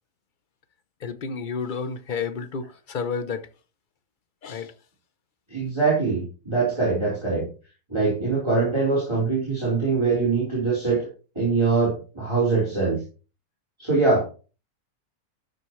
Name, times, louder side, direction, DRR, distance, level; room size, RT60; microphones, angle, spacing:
voice 1, 1.0-3.4 4.4-4.7, left 5 dB, 50° left, 0.6 m, -30 dB
voice 2, 5.5-7.5 7.9-11.1 11.4-13.0 13.8-14.2, right 4 dB, 15° right, 4.2 m, -23 dB
12.0 x 6.6 x 3.1 m
omnidirectional pair, 1.6 m